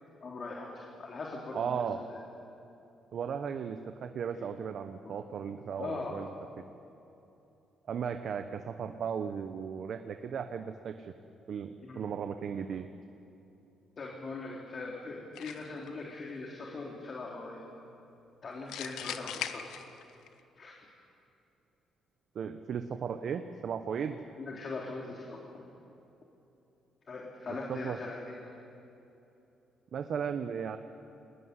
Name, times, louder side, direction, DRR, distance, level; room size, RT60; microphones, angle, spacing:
voice 1, 0.2-2.2 5.0-5.1 5.8-6.2 11.8-12.0 14.0-17.7 18.4-19.7 20.6-20.8 24.4-25.6 27.1-28.4, left 3 dB, 45° left, -1 dB, 3.5 m, -41 dB
voice 2, 1.5-2.0 3.1-6.3 7.9-11.1 11.5-12.9 22.3-24.2 27.7-28.0 29.9-30.8, right 7 dB, 60° right, 7 dB, 1.0 m, -36 dB
sound 1, 15.4-15.9 18.7-20.3, left 10 dB, 85° left, 1.2 m, -39 dB
22.5 x 19.5 x 9.8 m, 2.9 s
cardioid pair, 90°, 0 cm